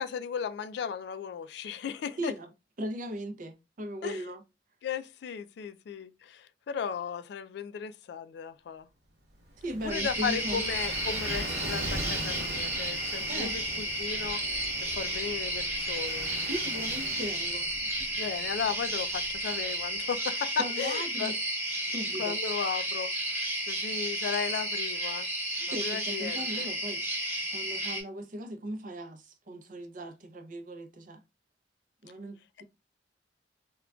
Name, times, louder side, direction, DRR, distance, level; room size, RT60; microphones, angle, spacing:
voice 1, 0.0-2.3 4.0-4.2 4.8-8.9 9.8-16.3 18.2-21.3 22.2-23.4 23.7-25.3 25.7-26.7, left 7 dB, 65° left, 0.3 m, -35 dB
voice 2, 2.2-2.5 2.8-4.4 9.6-10.6 13.3-13.5 16.5-17.6 18.0-18.1 20.6-21.4 21.8-22.3 25.6-27.0 27.5-31.2 32.0-32.6, right 1 dB, 45° right, 0.5 m, -38 dB
Gull seagull / Waves surf, 9.3-19.9, right 1 dB, 65° right, 0.9 m, -41 dB
sound 1, 9.9-28.0, right 1 dB, 15° right, 1.0 m, -32 dB
3.6 x 2.2 x 2.2 m
head